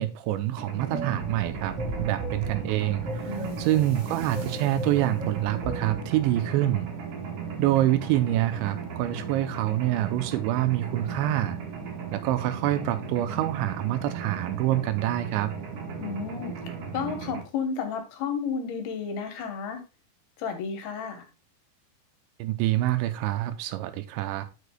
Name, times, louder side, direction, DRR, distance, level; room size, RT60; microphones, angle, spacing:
voice 1, 0.0-6.9 7.6-11.6 12.1-15.5 22.4-24.5, right 14 dB, 85° right, 2.9 m, -26 dB
Mechanisms, 0.6-17.4, right 6 dB, 60° right, 2.1 m, -37 dB
sound 1, 0.9-6.1, right 2 dB, 40° right, 3.0 m, -36 dB
voice 2, 3.3-3.7 16.0-19.8 20.4-21.3, left 6 dB, 70° left, 2.7 m, -32 dB
11.0 x 6.7 x 2.3 m
omnidirectional pair, 5.2 m